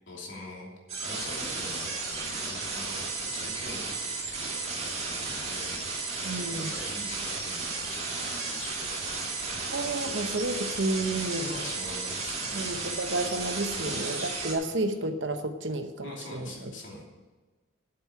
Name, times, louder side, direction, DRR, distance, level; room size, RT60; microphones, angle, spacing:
voice 1, 0.1-0.7 1.0-3.8 4.5-5.9 6.4-9.3 11.0-13.0 13.7-14.0 14.7-14.8 16.0-17.0, left 2 dB, 60° left, -1 dB, 2.9 m, -44 dB
sound 1, 0.9-14.5, right 3 dB, 30° right, 2.1 m, -34 dB
voice 2, 6.2-6.7 9.7-11.5 12.5-16.7, right 2 dB, 60° right, 7 dB, 0.9 m, -31 dB
8.4 x 7.7 x 7.1 m, 1.3 s
head